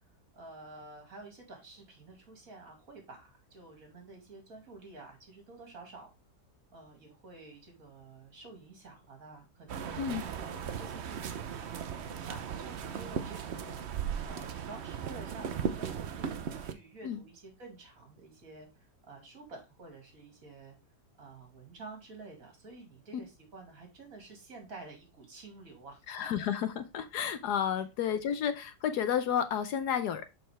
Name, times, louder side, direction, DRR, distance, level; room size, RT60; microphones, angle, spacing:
voice 1, 0.3-6.1 6.7-11.7 12.2-13.8 14.2-20.8 21.2-26.0, right 3 dB, 50° right, 2 dB, 2.5 m, -50 dB
sound 1, 9.7-16.7, right 8 dB, 65° right, 0.6 m, -37 dB
voice 2, 26.1-30.2, left 8 dB, 70° left, 10 dB, 1.2 m, -31 dB
6.5 x 5.4 x 3.2 m, 0.25 s
omnidirectional pair, 1.9 m